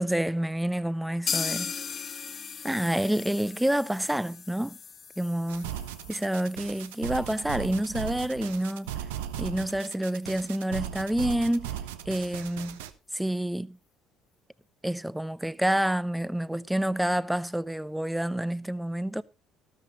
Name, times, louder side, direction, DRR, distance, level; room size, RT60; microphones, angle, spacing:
voice 1, 0.0-1.7 2.6-4.8 5.2-5.7 6.1-8.9 9.4-11.7 12.1-12.8 13.1-13.8 14.8-19.2, right 1 dB, 5° right, 0.6 m, -28 dB
sound 1, 1.3-9.0 9.3-9.4 9.7-9.8 10.2-10.3, left 6 dB, 45° left, 1.4 m, -38 dB
sound 2, 5.5-12.9, right 10 dB, 85° right, 0.7 m, -37 dB
13.0 x 13.0 x 2.9 m
hypercardioid pair, 60°, 0 cm